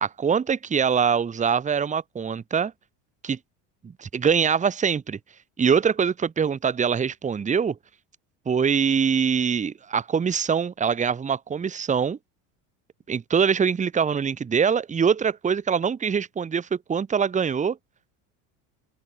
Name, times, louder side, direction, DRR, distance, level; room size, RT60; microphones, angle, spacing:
voice 1, 0.0-2.7 3.2-3.4 3.8-5.2 5.6-7.8 8.5-12.2 13.1-17.8, right 6 dB, 20° right, 1.0 m, -23 dB
open air
supercardioid pair, 100°, 37 cm